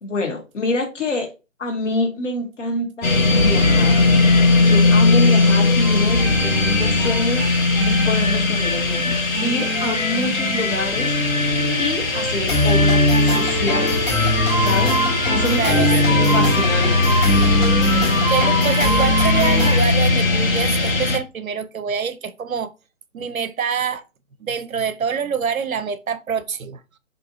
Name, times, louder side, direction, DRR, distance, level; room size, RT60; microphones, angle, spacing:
voice 1, 0.0-1.3 1.6-3.9 4.6-7.4 7.8-11.1 11.8-14.1 14.6-15.0 15.3-15.8 16.3-17.3, left 2 dB, 65° left, 1.3 m, -26 dB
sound 1, 3.0-21.2, left 3 dB, 85° left, 0.9 m, -19 dB
sound 2, 3.5-19.8, left 1 dB, 30° left, 1.2 m, -22 dB
voice 2, 15.5-16.4 18.3-22.7 23.1-24.0 24.4-26.8, right 7 dB, 85° right, 0.5 m, -25 dB
2.7 x 2.6 x 2.7 m
figure-of-eight pair, 140°, 40 cm